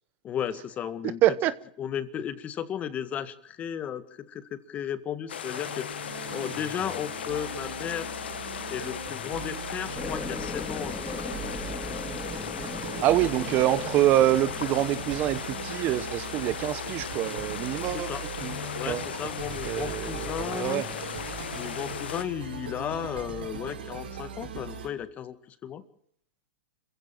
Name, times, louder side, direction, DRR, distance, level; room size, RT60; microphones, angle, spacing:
voice 1, 0.2-1.2 1.8-8.1 8.7-11.2 17.9-18.2 18.8-20.8 21.5-25.4 25.6-25.8, left 9 dB, 25° left, 1.8 m, -34 dB
voice 2, 1.2-1.5 13.0-18.1 18.4-18.5 18.9-19.1 19.6-20.8, right 13 dB, 35° right, 1.0 m, -25 dB
sound 1, 5.3-22.3, left 9 dB, 85° left, 1.6 m, -37 dB
sound 2, 5.4-24.9, right 4 dB, 80° right, 6.5 m, -39 dB
sound 3, 10.0-15.4, left 2 dB, 5° left, 1.0 m, -39 dB
26.5 x 15.5 x 7.6 m
hypercardioid pair, 135°, 5 cm